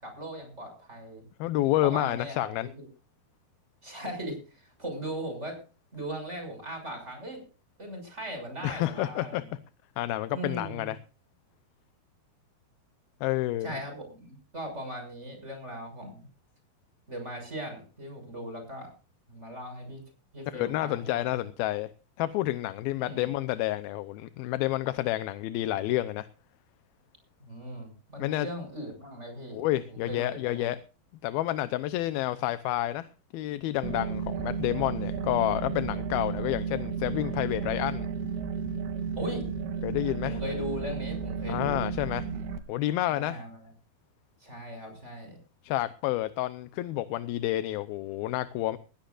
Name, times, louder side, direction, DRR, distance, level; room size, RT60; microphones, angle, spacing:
voice 1, 0.0-1.2 1.8-2.9 3.8-5.6 5.9-7.4 7.8-9.4 10.3-10.9 13.6-16.3 17.1-18.9 19.3-20.0 20.3-21.4 23.0-23.2 27.4-29.6 29.9-30.7 39.2-39.5 40.2-41.9 43.1-43.6 44.4-45.4, equal, 15° right, 6.4 m, -39 dB
voice 2, 1.4-2.7 8.6-9.4 10.0-11.0 13.2-13.7 20.5-21.9 22.2-26.3 28.2-28.5 29.5-30.8 31.2-33.1 33.3-38.1 39.8-40.4 41.5-42.3 42.7-43.4 45.6-48.8, left 15 dB, 80° left, 2.6 m, -29 dB
sound 1, 33.8-42.6, right 6 dB, 85° right, 3.5 m, -33 dB
20.5 x 16.0 x 2.5 m
omnidirectional pair, 4.4 m